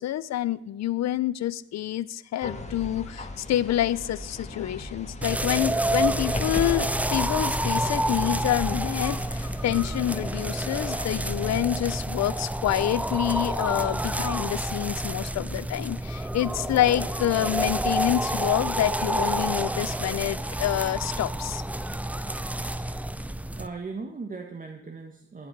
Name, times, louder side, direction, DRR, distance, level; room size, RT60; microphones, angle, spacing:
voice 1, 0.0-21.6, left 13 dB, 60° left, 18 dB, 0.6 m, -27 dB
sound 1, 2.4-11.6, left 2 dB, 20° left, 1.7 m, -37 dB
sound 2, 5.2-23.7, right 1 dB, 5° right, 0.5 m, -29 dB
voice 2, 23.5-25.5, right 4 dB, 25° right, 3 dB, 1.4 m, -38 dB
20.5 x 7.7 x 4.6 m, 0.81 s
cardioid pair, 90°, 30 cm